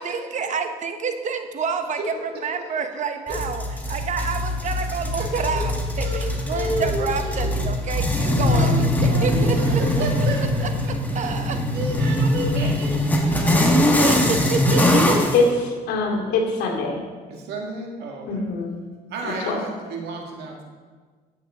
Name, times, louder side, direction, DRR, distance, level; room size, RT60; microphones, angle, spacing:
voice 1, 0.0-2.1 2.4-5.7 6.0-10.2 11.1-11.6 14.0-15.1, right 5 dB, 45° right, 7 dB, 1.1 m, -28 dB
voice 2, 2.3-2.7 3.3-3.7 5.1-5.7 6.0-7.8 8.1-15.3 17.3-18.4 19.1-20.6, right 2 dB, 75° right, 1 dB, 2.1 m, -32 dB
sound 1, 3.3-15.4, left 1 dB, 10° left, 1.5 m, -22 dB
voice 3, 15.9-17.0 18.3-18.8 19.2-19.6, left 4 dB, 80° left, -1 dB, 2.5 m, -23 dB
12.5 x 8.4 x 3.7 m, 1.5 s
cardioid pair, 110°, 17 cm